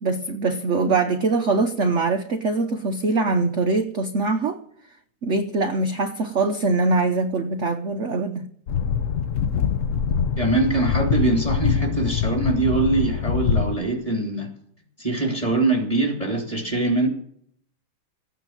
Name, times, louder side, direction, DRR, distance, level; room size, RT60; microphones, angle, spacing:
voice 1, 0.0-4.6 5.2-8.5, right 3 dB, 55° right, 0.8 m, -23 dB
sound 1, 8.7-13.8, left 7 dB, 65° left, 0.7 m, -24 dB
voice 2, 10.4-14.5 15.0-17.1, right 3 dB, 15° left, 3.2 m, -23 dB
15.0 x 9.4 x 7.6 m
omnidirectional pair, 2.3 m